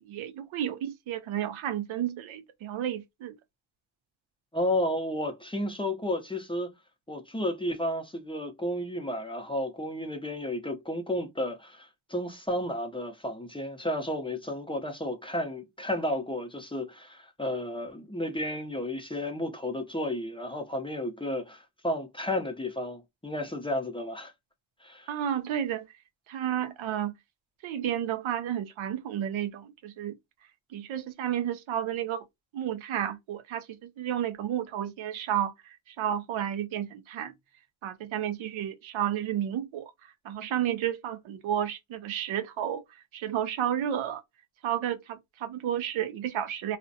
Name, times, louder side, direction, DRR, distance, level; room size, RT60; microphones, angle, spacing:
voice 1, 0.1-3.4 25.1-25.9 26.3-27.1 27.6-30.1 30.7-32.2 32.5-33.7 34.0-37.3 37.8-39.9 40.2-42.8 43.1-44.2 44.6-46.8, right 10 dB, 70° right, 0.6 m, -31 dB
voice 2, 4.5-6.7 7.1-24.3 24.8-25.1, left 1 dB, 10° left, 0.5 m, -32 dB
2.4 x 2.1 x 2.6 m
supercardioid pair, 55°, 50 cm